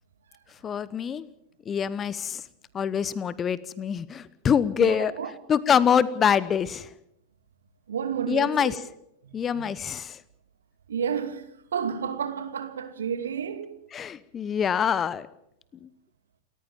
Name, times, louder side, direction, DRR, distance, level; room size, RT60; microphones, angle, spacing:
voice 1, 0.6-1.3 1.7-2.4 2.7-5.1 5.5-6.9 8.3-8.7 9.3-10.2 13.9-15.3 15.8-15.9, left 7 dB, 25° left, 1.0 m, -25 dB
voice 2, 4.8-5.4 7.9-8.8 9.2-9.6 10.9-13.8, right 7 dB, 65° right, 2.5 m, -31 dB
28.5 x 14.5 x 7.3 m
figure-of-eight pair, 90°, 0 cm